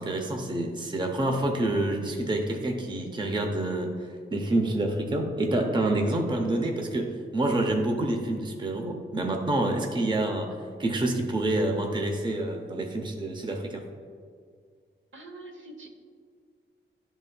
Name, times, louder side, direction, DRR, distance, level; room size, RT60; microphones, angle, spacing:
voice 1, 0.0-3.9 4.3-13.8, right 1 dB, 20° right, 3 dB, 0.6 m, -27 dB
voice 2, 15.1-15.9, right 2 dB, 70° right, 2 dB, 0.9 m, -44 dB
11.0 x 4.0 x 2.2 m, 2.1 s
wide cardioid pair, 100°, 21 cm